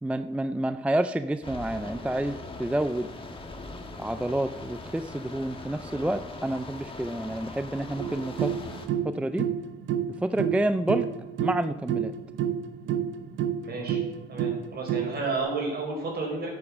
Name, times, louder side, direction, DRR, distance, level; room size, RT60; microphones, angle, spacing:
voice 1, 0.0-3.1 4.0-8.5 9.0-9.5 10.2-11.1 11.4-12.1, right 1 dB, 5° right, 12 dB, 0.4 m, -29 dB
sound 1, 1.4-8.9, left 2 dB, 25° left, 1.6 m, -41 dB
sound 2, 8.0-15.3, right 9 dB, 70° right, 0.7 m, -30 dB
voice 2, 13.6-14.0 14.3-16.5, right 3 dB, 55° right, 0 dB, 5.0 m, -31 dB
10.5 x 8.4 x 6.1 m, 1.1 s
cardioid pair, 90°, 20 cm